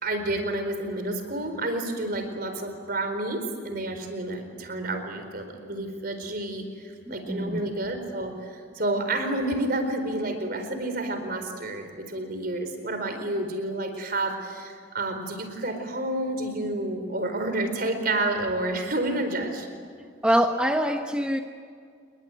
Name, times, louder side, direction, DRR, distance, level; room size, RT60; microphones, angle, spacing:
voice 1, 0.0-19.7, right 2 dB, 50° right, 7 dB, 4.4 m, -30 dB
voice 2, 7.1-7.7 20.2-21.4, equal, 5° right, 4 dB, 0.9 m, -24 dB
29.5 x 21.5 x 9.4 m, 2.1 s
head